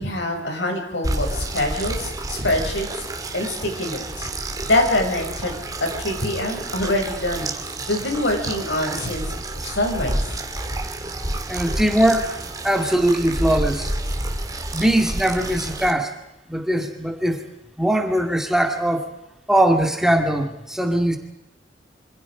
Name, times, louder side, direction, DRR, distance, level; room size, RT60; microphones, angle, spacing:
voice 1, 0.0-2.9 3.3-4.3 4.6-5.5 5.8-7.5 7.9-9.3 9.6-10.3, left 1 dB, 75° left, 2 dB, 6.6 m, -24 dB
sound 1, 1.0-15.9, right 1 dB, 20° right, 2.2 m, -29 dB
voice 2, 11.5-12.4 12.6-13.9 14.7-16.1 16.5-17.5 17.8-19.1 19.5-21.2, right 1 dB, 5° right, 3 dB, 2.1 m, -20 dB
27.0 x 25.5 x 5.0 m, 0.90 s
head